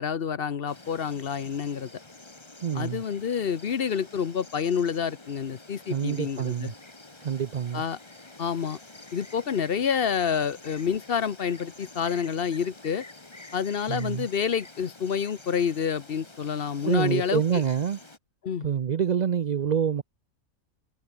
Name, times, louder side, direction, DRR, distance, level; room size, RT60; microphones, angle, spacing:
voice 1, 0.0-1.9 2.7-6.7 7.7-8.0 8.4-8.8 9.1-13.0 13.5-17.6 18.4-18.7, left 7 dB, 45° left, 1.0 m, -28 dB
Insect, 0.7-18.2, left 2 dB, 20° left, 1.7 m, -48 dB
voice 2, 2.6-3.0 5.9-6.7 7.2-7.8 13.9-14.3 16.8-18.0 18.6-20.0, right 8 dB, 65° right, 0.4 m, -27 dB
omnidirectional pair, 1.5 m